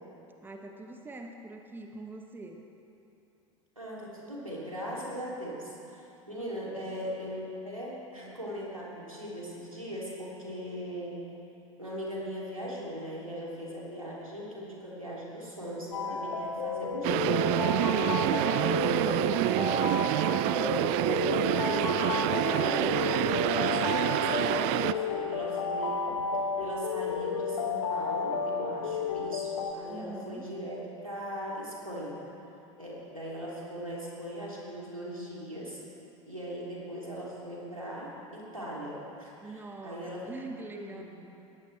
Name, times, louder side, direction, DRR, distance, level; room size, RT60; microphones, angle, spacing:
voice 1, 0.4-2.6 6.3-6.4 6.7-7.0 18.4-20.1 29.9-30.5 39.4-41.0, right 2 dB, 10° right, 3 dB, 1.2 m, -43 dB
voice 2, 3.8-11.2 11.8-17.5 18.0-19.2 20.2-20.9 21.4-26.1 26.6-32.2 32.8-35.8 36.3-40.2 40.7-41.0, equal, 90° right, -5 dB, 3.0 m, -39 dB
sound 1, 15.9-29.7, left 5 dB, 65° left, 1.3 m, -32 dB
sound 2, 17.0-24.9, right 16 dB, 40° right, 0.4 m, -27 dB
20.0 x 15.5 x 3.4 m, 2.9 s
figure-of-eight pair, 80°, 17 cm